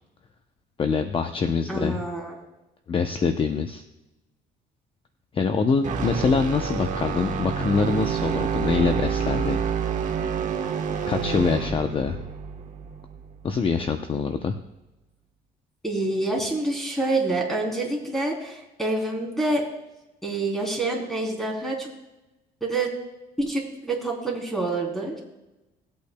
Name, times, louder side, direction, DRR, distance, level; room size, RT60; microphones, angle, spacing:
voice 1, 0.8-2.0 2.9-3.8 5.3-9.6 11.1-12.2 13.4-14.6, left 5 dB, 30° left, 7 dB, 0.6 m, -24 dB
voice 2, 1.7-2.3 15.8-19.6 20.2-21.9 22.6-22.9 23.4-25.2, right 2 dB, ahead, 0 dB, 3.2 m, -27 dB
sound 1, 5.8-14.0, right 7 dB, 45° right, 1.1 m, -28 dB
19.0 x 8.5 x 2.2 m, 1.0 s
cardioid pair, 110°, 17 cm